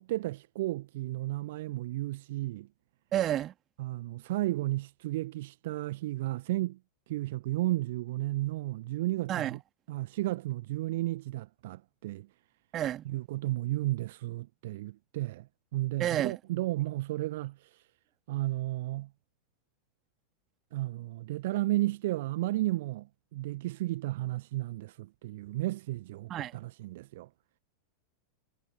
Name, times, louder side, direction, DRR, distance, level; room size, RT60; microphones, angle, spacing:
voice 1, 0.0-2.7 3.8-6.8 7.1-9.6 9.9-12.3 13.0-17.8 18.3-19.1 20.7-27.3, right 17 dB, 55° right, 1.5 m, -33 dB
voice 2, 3.1-3.5 9.3-9.6 12.7-13.0 16.0-16.3 26.3-26.5, right 12 dB, 30° right, 2.1 m, -30 dB
figure-of-eight pair, 90°, 0 cm